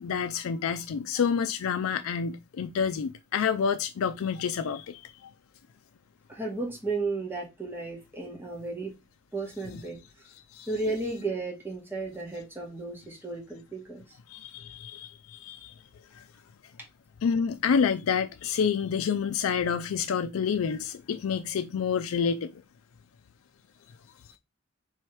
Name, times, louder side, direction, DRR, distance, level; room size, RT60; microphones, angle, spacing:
voice 1, 0.0-5.3 10.5-10.7 14.3-15.7 16.1-16.2 17.2-22.6, left 6 dB, 90° left, 0.4 m, -28 dB
voice 2, 6.3-8.9 9.3-10.3 10.7-14.0, right 3 dB, 10° right, 1.4 m, -34 dB
3.5 x 3.2 x 4.4 m
head